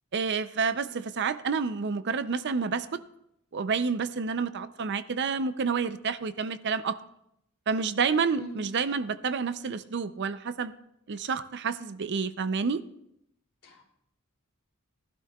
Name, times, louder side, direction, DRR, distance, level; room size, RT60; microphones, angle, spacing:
voice 1, 0.1-3.0 3.5-7.0 7.7-10.7 11.1-12.8, right 5 dB, 50° right, 13 dB, 0.5 m, -29 dB
voice 2, 0.8-1.0 8.3-8.6 13.6-13.9, right 1 dB, 80° left, -1 dB, 2.9 m, -42 dB
18.5 x 12.0 x 2.3 m, 0.77 s
head